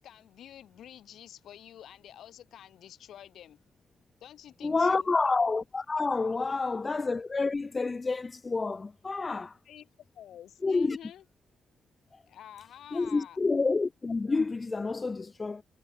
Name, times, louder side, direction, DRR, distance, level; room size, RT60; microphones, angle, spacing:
voice 1, 0.0-3.6 4.2-5.1 6.5-6.6 9.6-9.9 10.1-11.2 12.3-13.4, left 10 dB, 75° left, 7.6 m, -49 dB
voice 2, 4.6-9.6 10.6-11.0 12.1-12.2 12.9-15.6, left 3 dB, 30° left, 0.3 m, -28 dB
supercardioid pair, 65°, 0 cm